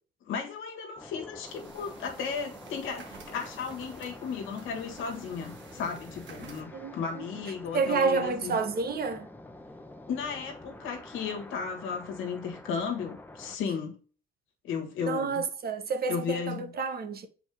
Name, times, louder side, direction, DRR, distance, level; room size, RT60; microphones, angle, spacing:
voice 1, 0.2-8.6 10.1-14.0 14.6-15.4 16.1-16.7, left 6 dB, 90° left, 1.6 m, -35 dB
sound 1, 1.0-13.6, left 1 dB, 10° left, 0.9 m, -48 dB
Printer - Laser, 1.5-6.6, right 5 dB, 65° right, 1.4 m, -51 dB
voice 2, 7.7-9.3 15.0-17.3, right 5 dB, 50° right, 1.1 m, -29 dB
6.3 x 4.6 x 3.4 m
cardioid pair, 90°, 20 cm